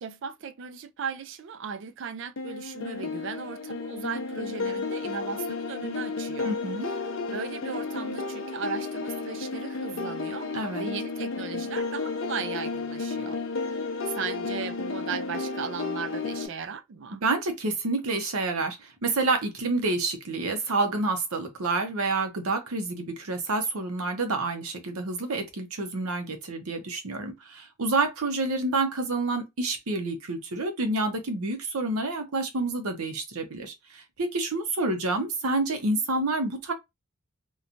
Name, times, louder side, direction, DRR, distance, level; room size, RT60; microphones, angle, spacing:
voice 1, 0.0-6.5 6.8-6.9 7.3-10.5 10.8-13.4 14.1-17.2, right 6 dB, 55° right, 0.4 m, -37 dB
sound 1, 2.4-16.5, left 4 dB, 65° left, 0.6 m, -32 dB
voice 2, 6.4-6.9 10.5-10.8 17.2-36.7, right 3 dB, 85° right, 0.7 m, -28 dB
2.9 x 2.2 x 2.5 m
head